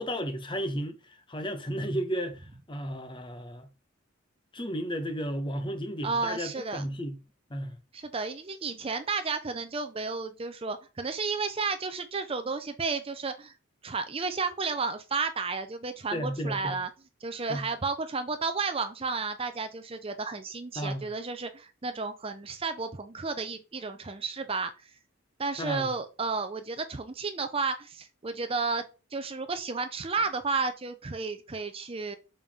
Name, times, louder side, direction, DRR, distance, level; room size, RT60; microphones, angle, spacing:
voice 1, 0.0-3.7 4.5-7.2 7.5-7.8 16.1-16.8 17.5-17.7 20.8-21.1 25.6-25.9, equal, 25° left, 1.0 m, -33 dB
voice 2, 6.0-6.8 7.9-13.5 13.8-16.9 17.2-24.7 25.4-28.9 29.1-32.2, right 4 dB, 25° right, 0.6 m, -32 dB
6.9 x 5.4 x 3.6 m
head